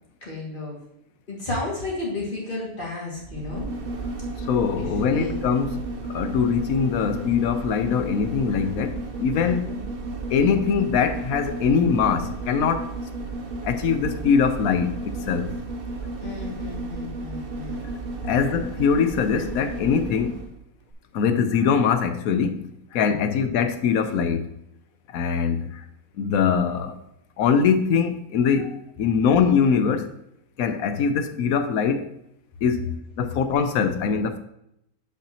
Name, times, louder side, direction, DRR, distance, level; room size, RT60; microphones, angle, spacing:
voice 1, 0.2-0.8 1.3-3.7 4.8-5.3 9.3-9.8 16.2-17.8 23.1-23.3, left 2 dB, 35° left, 2.4 m, -33 dB
sound 1, 3.2-20.5 20.9-21.0, right 3 dB, 45° right, 0.9 m, -33 dB
voice 2, 4.4-9.6 10.3-12.9 13.6-15.5 18.2-20.5 21.1-24.5 25.1-25.8 26.2-27.0 27.4-30.1 30.6-32.1 32.6-34.4, left 6 dB, 70° left, 1.1 m, -22 dB
7.8 x 5.8 x 3.0 m
omnidirectional pair, 1.6 m